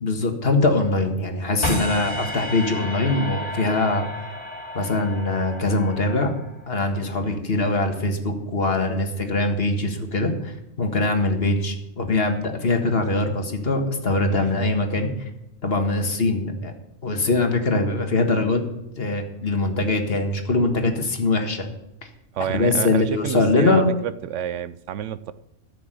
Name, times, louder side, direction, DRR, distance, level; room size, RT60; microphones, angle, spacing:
voice 1, 0.0-4.1 4.8-6.3 6.7-10.5 10.8-15.1 15.6-16.7 17.0-18.6 19.0-21.7 22.5-24.0, left 2 dB, 50° left, 5 dB, 1.8 m, -22 dB
sound 1, 1.6-6.8, left 1 dB, 30° left, 3.0 m, -32 dB
voice 2, 22.3-25.3, right 10 dB, 75° right, 15 dB, 0.9 m, -29 dB
14.0 x 7.0 x 7.7 m, 0.89 s
omnidirectional pair, 1.3 m